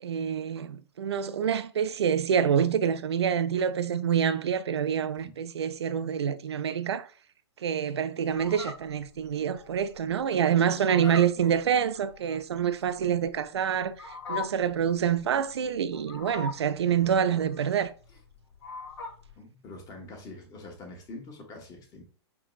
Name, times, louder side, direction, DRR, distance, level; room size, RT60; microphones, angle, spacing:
voice 1, 0.0-7.1 7.6-13.9 14.3-17.9, right 8 dB, 70° right, 0.5 m, -26 dB
Fowl, 8.3-19.4, left 5 dB, 70° left, 1.3 m, -42 dB
voice 2, 10.7-11.6 16.9-17.4 18.1-18.2 19.4-22.0, left 2 dB, 25° left, 1.3 m, -46 dB
5.9 x 3.0 x 2.3 m
figure-of-eight pair, 110°, 15 cm